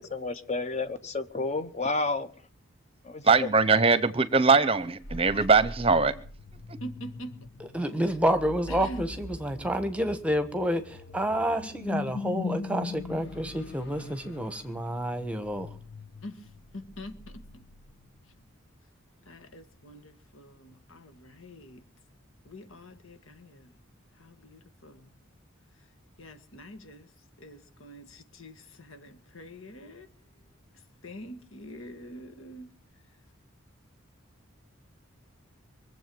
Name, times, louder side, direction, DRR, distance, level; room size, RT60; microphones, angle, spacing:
voice 1, 0.0-2.3 3.0-3.5, left 3 dB, 35° left, 1.1 m, -31 dB
voice 2, 3.2-6.1, right 4 dB, 25° right, 0.8 m, -21 dB
sound 1, 5.0-18.3, left 3 dB, 55° left, 1.2 m, -40 dB
voice 3, 6.8-7.3 8.7-9.1 16.2-17.2 19.2-21.8 22.5-23.7 24.2-25.1 26.2-27.1 27.4-30.1 31.0-32.7, equal, 80° left, 1.8 m, -45 dB
voice 4, 7.6-15.8, equal, 5° right, 1.2 m, -29 dB
23.5 x 7.8 x 7.7 m
head